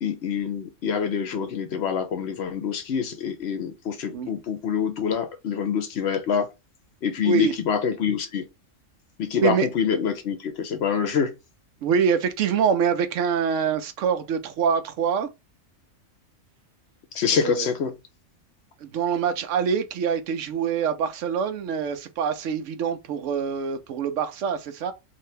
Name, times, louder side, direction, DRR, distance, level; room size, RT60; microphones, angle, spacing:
voice 1, 0.0-6.5 7.0-8.4 9.2-11.3 17.1-17.9, left 7 dB, 65° left, 0.8 m, -26 dB
voice 2, 11.8-15.3 17.3-17.7 18.8-24.9, right 7 dB, 75° right, 0.9 m, -25 dB
2.8 x 2.7 x 3.2 m
omnidirectional pair, 1.3 m